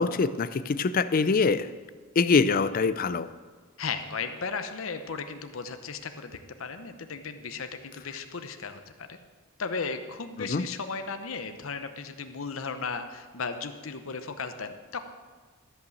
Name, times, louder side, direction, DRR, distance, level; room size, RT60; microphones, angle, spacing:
voice 1, 0.0-1.7 2.2-3.3 10.4-10.6, left 4 dB, 45° left, 14 dB, 0.4 m, -24 dB
voice 2, 3.8-9.2 9.6-15.0, left 5 dB, 70° left, 8 dB, 0.8 m, -35 dB
13.0 x 5.8 x 7.8 m, 1.4 s
head